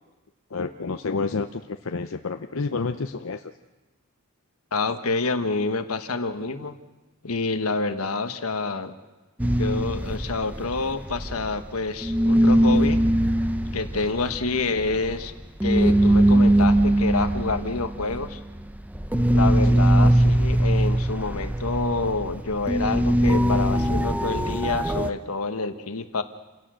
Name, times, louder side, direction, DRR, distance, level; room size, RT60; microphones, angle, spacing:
voice 1, 0.5-3.5 19.7-19.8, left 4 dB, 65° left, 7 dB, 0.7 m, -29 dB
voice 2, 4.7-6.8 7.2-8.9 9.6-13.0 13.7-15.3 15.6-18.4 19.3-26.2, left 3 dB, 85° left, 8 dB, 1.4 m, -27 dB
sound 1, 9.4-11.8 12.0-25.1, right 1 dB, 5° right, 0.7 m, -21 dB
28.5 x 16.5 x 6.3 m, 1.2 s
head